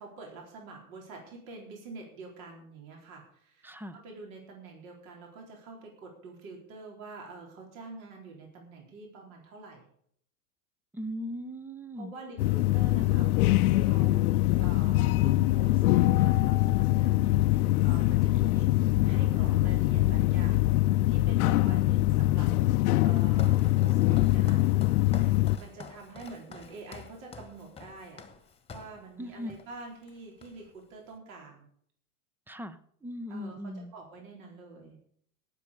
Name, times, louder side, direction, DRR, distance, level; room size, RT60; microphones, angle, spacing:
voice 1, 0.0-9.8 12.0-18.7 19.0-20.7 21.1-24.7 25.6-28.2 28.7-31.6 33.3-35.0, right 3 dB, 65° right, 0 dB, 4.1 m, -47 dB
voice 2, 3.6-4.0 10.9-12.1 29.2-29.5 32.5-33.9, equal, 5° right, 14 dB, 0.5 m, -39 dB
sound 1, 12.4-25.6, left 16 dB, 70° left, 0.7 m, -23 dB
Walk footsteps, 23.0-29.0 29.5-29.8 30.0-30.8, left 5 dB, 15° left, 1.4 m, -47 dB
18.0 x 7.6 x 5.2 m, 0.63 s
hypercardioid pair, 110°, 45 cm